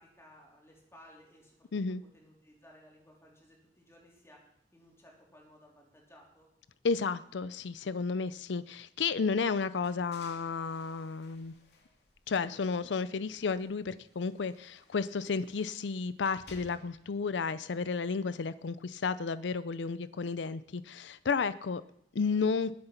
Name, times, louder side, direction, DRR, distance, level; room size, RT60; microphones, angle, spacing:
voice 1, 0.0-1.8 2.1-6.5, equal, 15° left, -1 dB, 3.5 m, -58 dB
voice 2, 6.8-11.5 12.3-21.8 22.1-22.7, left 5 dB, 90° left, 15 dB, 0.5 m, -32 dB
sound 1, 9.7-12.8 13.2-17.2, left 3 dB, 65° left, 2.5 m, -58 dB
21.0 x 7.8 x 5.8 m, 0.78 s
head